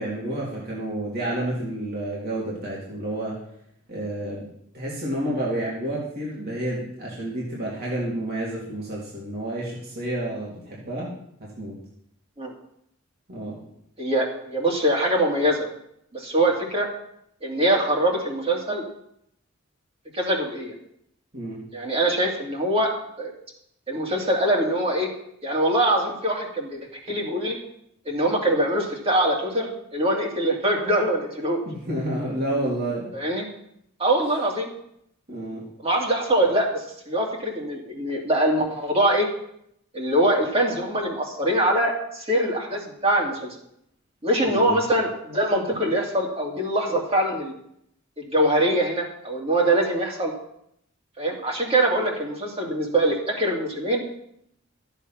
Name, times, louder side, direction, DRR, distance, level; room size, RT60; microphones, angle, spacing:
voice 1, 0.0-3.3 3.9-4.4 4.7-11.1 11.6-11.7 13.3-13.6 21.3-21.6 31.6-33.1 35.3-35.6 44.4-44.8, right 1 dB, 50° right, -6 dB, 3.2 m, -30 dB
voice 2, 14.0-15.7 16.1-16.9 17.4-18.8 20.1-20.7 21.7-22.9 23.2-23.3 23.9-25.1 25.4-26.8 27.1-27.6 28.1-31.6 33.1-33.5 34.0-34.7 35.8-39.3 39.9-43.5 44.2-47.5 48.2-50.3 51.2-54.0, right 1 dB, 30° right, -1 dB, 2.7 m, -23 dB
14.0 x 8.1 x 5.9 m, 0.74 s
head